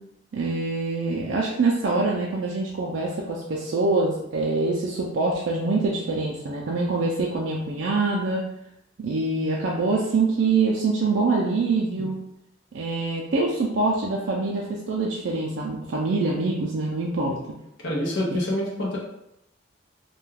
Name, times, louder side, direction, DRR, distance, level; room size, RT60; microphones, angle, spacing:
voice 1, 0.3-8.4 9.0-12.2 12.7-17.3, right 3 dB, 70° right, -3 dB, 0.4 m, -25 dB
voice 2, 17.8-19.0, left 1 dB, 70° left, -3 dB, 0.6 m, -27 dB
2.2 x 2.2 x 3.2 m, 0.81 s
head